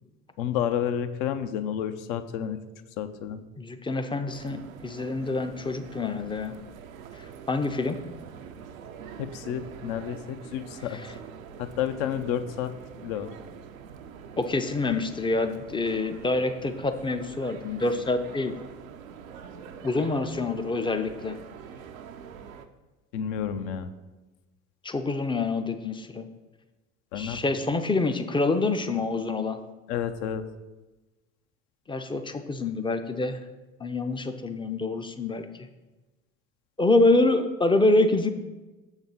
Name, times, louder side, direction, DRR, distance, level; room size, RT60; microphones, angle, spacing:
voice 1, 0.4-2.6 3.0-3.4 9.2-11.0 11.6-12.7 13.0-13.3 23.1-23.9 27.1-27.4 29.9-30.4, left 9 dB, 60° left, 10 dB, 0.6 m, -30 dB
voice 2, 3.6-6.5 7.5-8.0 10.9-11.0 14.4-18.5 19.8-21.4 24.8-26.3 27.1-29.6 31.9-33.4 33.8-35.5 36.8-38.3, left 2 dB, 15° left, 8 dB, 0.5 m, -26 dB
sound 1, 4.3-22.7, right 7 dB, 80° right, 0.6 m, -45 dB
7.0 x 4.0 x 5.6 m, 1.1 s
figure-of-eight pair, 65°, 40 cm